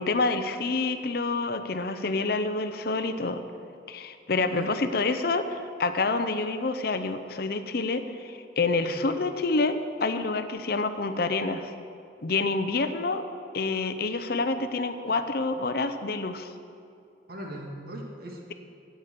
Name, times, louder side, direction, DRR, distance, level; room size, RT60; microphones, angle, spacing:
voice 1, 0.0-3.4 3.9-11.7 12.2-13.2 13.5-16.5, left 3 dB, 55° left, 9 dB, 0.7 m, -28 dB
voice 2, 4.4-4.7 8.8-9.0 17.3-18.5, right 1 dB, 55° right, 1 dB, 2.0 m, -39 dB
11.0 x 9.1 x 8.2 m, 2.5 s
head